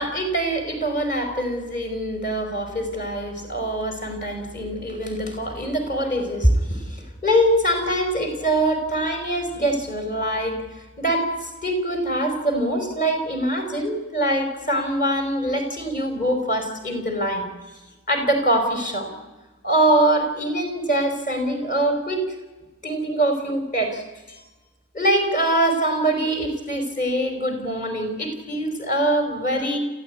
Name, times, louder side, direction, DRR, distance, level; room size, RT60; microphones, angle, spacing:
voice 1, 0.0-10.6 11.0-17.4 18.1-19.1 19.6-22.3 22.8-24.0 24.3-24.4 24.9-29.8, right 1 dB, 35° left, 5 dB, 4.8 m, -23 dB
29.0 x 15.0 x 9.6 m, 1.2 s
head